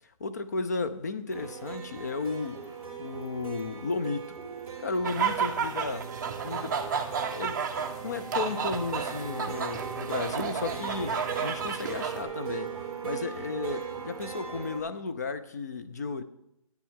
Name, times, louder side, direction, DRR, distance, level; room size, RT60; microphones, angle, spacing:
voice 1, 0.2-2.6 3.0-4.4 4.8-6.1 6.4-6.8 7.3-7.6 8.0-12.7 13.0-16.2, left 4 dB, 30° left, 0.4 m, -34 dB
sound 1, 1.3-14.8, right 7 dB, 5° right, 2.7 m, -38 dB
sound 2, 5.0-12.2, right 6 dB, 35° right, 0.7 m, -32 dB
11.0 x 9.0 x 3.6 m
hypercardioid pair, 170°, 18 cm